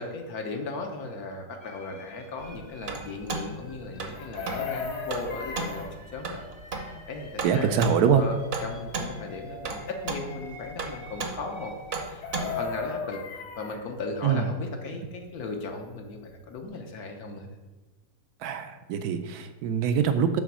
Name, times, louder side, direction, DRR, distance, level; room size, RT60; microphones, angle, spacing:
voice 1, 0.0-6.4 6.7-8.3 8.6-11.7 12.0-17.5, left 3 dB, 70° left, 3 dB, 1.3 m, -37 dB
sound 1, 1.6-12.0, left 1 dB, 30° left, 0.5 m, -48 dB
sound 2, 2.4-12.8, right 3 dB, 50° right, 0.8 m, -36 dB
Chicken rooster, 4.1-5.9 12.0-13.8 16.0-16.1 16.4-16.7, left 6 dB, 50° left, 1.1 m, -35 dB
voice 2, 7.4-8.3 14.2-14.5 18.4-20.4, right 7 dB, 75° right, 8 dB, 1.0 m, -24 dB
7.1 x 3.4 x 6.0 m, 1.1 s
omnidirectional pair, 1.7 m